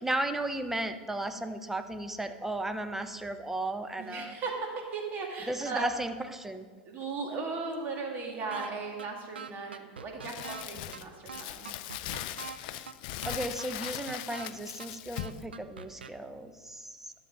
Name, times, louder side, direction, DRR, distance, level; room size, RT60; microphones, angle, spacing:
voice 1, 0.0-4.4 5.5-6.7 12.6-12.9 13.2-17.1, right 1 dB, 5° right, 9 dB, 0.7 m, -35 dB
voice 2, 4.0-5.9 6.8-11.8, right 4 dB, 40° right, 1 dB, 2.3 m, -37 dB
sound 1, 8.5-8.7 9.0-9.1 9.4-10.6 10.9-11.0 11.3-12.6 12.9-13.0 13.2-14.5 14.8-14.9 15.2-16.1, right 6 dB, 85° right, 0.5 m, -43 dB
Crumpling crinkling, 10.2-15.4, left 13 dB, 55° left, 0.4 m, -40 dB
12.5 x 7.0 x 3.8 m, 1.5 s
hypercardioid pair, 90°, 5 cm